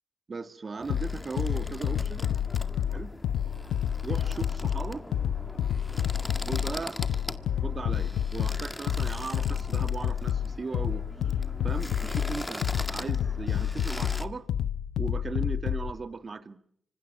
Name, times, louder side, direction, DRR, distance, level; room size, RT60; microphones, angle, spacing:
voice 1, 0.3-2.2 2.9-3.1 4.0-5.1 6.5-7.0 7.6-11.3 11.6-14.5 15.0-16.6, right 4 dB, 50° right, 1.9 m, -37 dB
sound 1, 0.8-14.3, left 1 dB, 15° left, 1.9 m, -41 dB
sound 2, 0.9-15.9, left 9 dB, 90° left, 1.1 m, -29 dB
26.0 x 25.5 x 5.6 m
cardioid pair, 55°, 0 cm